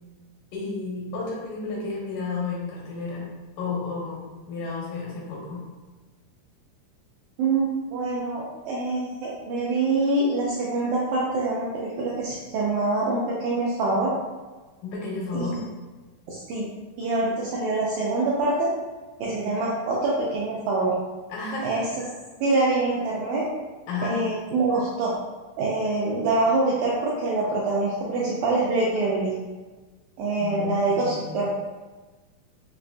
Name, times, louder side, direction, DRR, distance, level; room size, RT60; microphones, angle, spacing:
voice 1, 0.5-3.3 3.6-5.6 14.8-15.6 21.3-21.9 23.9-24.2 30.4-31.4, left 3 dB, 90° left, -4 dB, 2.7 m, -32 dB
voice 2, 7.4-14.1 15.3-15.5 16.3-16.7 17.0-18.7 19.2-20.9 21.6-21.8 22.4-23.4 24.0-25.1 25.6-29.3 30.2-31.5, right 2 dB, 80° right, -5 dB, 1.7 m, -25 dB
5.5 x 2.5 x 2.2 m, 1.3 s
omnidirectional pair, 3.7 m